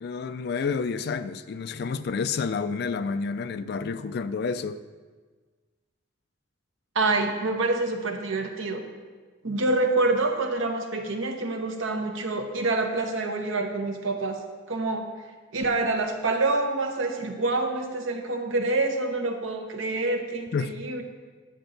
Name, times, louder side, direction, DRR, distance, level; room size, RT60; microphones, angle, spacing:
voice 1, 0.0-4.8 20.5-20.7, left 5 dB, 55° left, 13 dB, 0.3 m, -29 dB
voice 2, 6.9-8.8 9.4-14.4 14.7-15.1 15.5-21.0, right 2 dB, 80° right, 4 dB, 1.0 m, -27 dB
10.0 x 6.8 x 3.9 m, 1.4 s
head